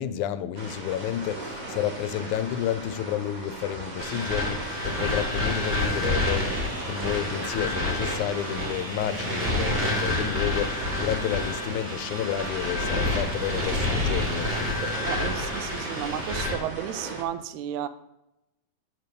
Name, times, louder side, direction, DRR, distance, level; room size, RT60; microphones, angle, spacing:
voice 1, 0.0-14.9, left 10 dB, 85° left, 2.0 m, -31 dB
sound 1, 0.5-17.2, right 2 dB, 55° right, 0.5 m, -38 dB
sound 2, 4.0-16.6, left 1 dB, 25° right, 1.7 m, -28 dB
voice 2, 15.1-17.9, right 11 dB, 80° right, 1.9 m, -33 dB
8.4 x 4.5 x 6.8 m
omnidirectional pair, 3.4 m